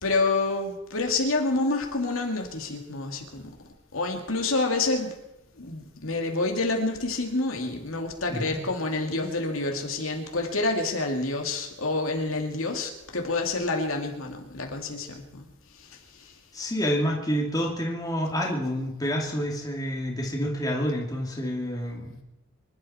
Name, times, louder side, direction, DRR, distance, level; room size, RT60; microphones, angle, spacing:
voice 1, 0.0-3.6 3.9-5.1 5.6-15.5 15.7-16.4, left 3 dB, 75° left, 2 dB, 2.5 m, -28 dB
voice 2, 16.5-22.2, equal, 15° left, -1 dB, 2.4 m, -28 dB
25.5 x 12.0 x 4.3 m, 0.92 s
head